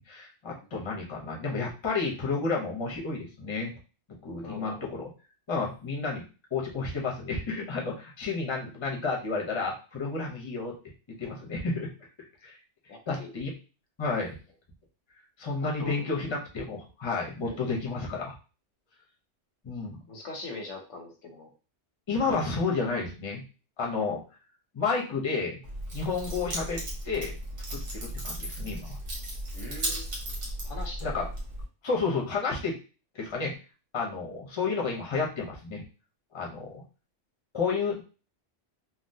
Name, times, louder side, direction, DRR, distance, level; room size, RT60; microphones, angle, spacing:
voice 1, 0.1-3.7 4.2-5.1 5.5-6.2 6.5-10.7 11.2-11.9 12.4-12.6 13.1-13.5 14.0-14.3 15.4-18.3 19.6-20.0 22.1-23.4 23.8-24.2 24.7-25.6 25.9-27.4 27.7-29.0 31.0-31.3 31.8-32.7 33.1-33.5 33.9-35.8 36.3-36.8 37.5-38.1, left 4 dB, 30° left, -1 dB, 0.7 m, -31 dB
voice 2, 4.4-4.9 12.9-13.3 15.6-16.0 17.4-17.6 20.1-21.5 29.5-30.4 30.6-31.1, left 2 dB, 90° left, 2 dB, 1.1 m, -42 dB
Keys jangling, 25.6-31.6, right 1 dB, 85° right, 1.4 m, -35 dB
3.6 x 2.1 x 2.6 m, 0.34 s
omnidirectional pair, 1.2 m